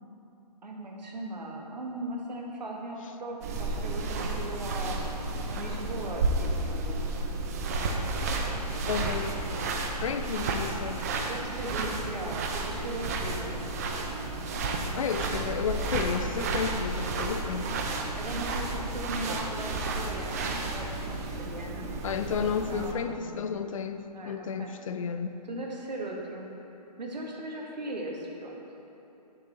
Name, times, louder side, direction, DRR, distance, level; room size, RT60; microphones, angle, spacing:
voice 1, 0.6-7.1 8.3-8.6 8.8-9.5 11.2-13.6 17.8-21.9 22.4-23.4 24.1-24.7 25.5-26.5 27.0-28.5, right 1 dB, 85° right, -1 dB, 1.3 m, -39 dB
sound 1, 3.4-22.9, right 2 dB, 25° right, 0.4 m, -32 dB
voice 2, 8.9-9.4 9.9-11.1 15.0-17.8 22.0-25.4, left 6 dB, 55° left, 9 dB, 0.4 m, -32 dB
6.8 x 6.0 x 3.8 m, 2.9 s
hypercardioid pair, 145°, 21 cm